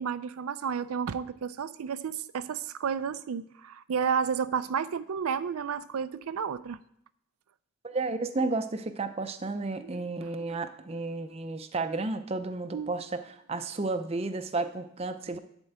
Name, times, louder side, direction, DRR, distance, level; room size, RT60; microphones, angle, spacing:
voice 1, 0.0-6.8 9.8-10.6 12.7-12.9 15.3-15.4, right 6 dB, 85° right, 13 dB, 0.4 m, -32 dB
voice 2, 7.8-15.4, right 3 dB, 30° right, 9 dB, 0.5 m, -32 dB
10.5 x 4.5 x 8.0 m, 0.71 s
head